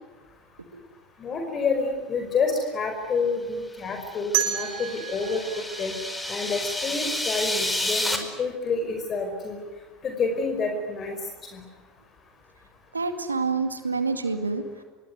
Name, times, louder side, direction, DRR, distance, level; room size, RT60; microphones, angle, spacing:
voice 1, 1.2-5.4 5.8-5.9 6.3-9.6 10.0-11.2 11.5-11.6, left 4 dB, 35° left, 5 dB, 5.3 m, -28 dB
sound 1, 4.0-8.2, left 1 dB, 10° left, 4.9 m, -30 dB
sound 2, 4.3-7.2, right 11 dB, 60° right, 5.4 m, -31 dB
voice 2, 12.9-14.8, right 4 dB, 90° right, 8 dB, 2.3 m, -27 dB
26.0 x 23.5 x 9.6 m, 1.3 s
figure-of-eight pair, 75°, 0 cm